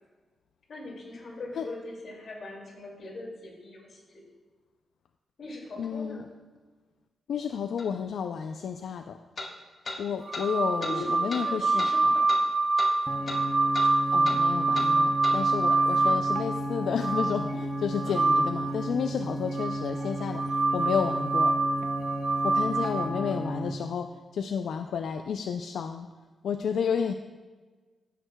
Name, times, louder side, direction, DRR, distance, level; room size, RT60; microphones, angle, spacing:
voice 1, 0.7-4.2 5.4-6.3 10.8-12.4 15.7-16.2 18.0-18.2 22.7-23.5, left 2 dB, 50° left, -2 dB, 2.3 m, -41 dB
voice 2, 5.8-6.2 7.3-9.2 10.0-12.1 14.1-21.5 22.4-26.1 26.4-27.1, left 7 dB, 80° left, 6 dB, 0.3 m, -31 dB
sound 1, 7.8-7.9 9.4-9.5 9.9-10.0 10.3-10.5 10.8-11.0 11.3-11.4 11.8-11.9 12.3-12.4 12.8-12.9 13.3-13.4 13.7-13.9 14.2-14.4 14.7-14.9 15.2-15.4, left 2 dB, 35° left, 1.1 m, -36 dB
sound 2, 10.3-18.8 19.5-23.1, right 3 dB, 80° right, 1.5 m, -26 dB
sound 3, 13.1-23.7, right 1 dB, 10° left, 0.7 m, -34 dB
14.0 x 6.4 x 2.2 m, 1.3 s
wide cardioid pair, 140°, 0 cm